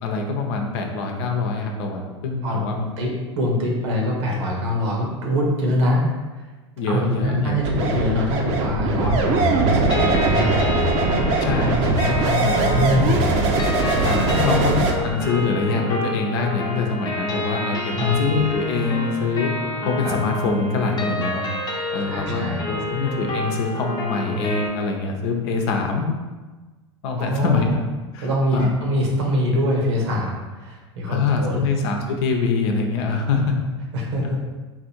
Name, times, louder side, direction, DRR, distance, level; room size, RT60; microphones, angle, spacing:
voice 1, 0.0-3.1 6.8-7.6 9.8-9.9 11.4-12.1 14.0-19.5 19.8-21.5 21.9-26.1 27.0-27.7 28.1-28.7 31.1-33.5, left 4 dB, 60° left, 3 dB, 0.8 m, -24 dB
voice 2, 3.3-6.0 6.9-10.6 11.4-13.3 13.9-14.7 15.2-15.3 17.9-18.2 20.0-20.2 22.1-22.6 27.2-27.7 28.2-31.7 33.9-34.4, left 1 dB, 75° right, -1 dB, 1.4 m, -24 dB
sound 1, 7.6-14.9, right 3 dB, 50° right, 0.8 m, -21 dB
sound 2, 9.9-24.7, left 2 dB, 30° left, 0.9 m, -29 dB
4.0 x 2.6 x 4.4 m, 1.3 s
hypercardioid pair, 95°, 15 cm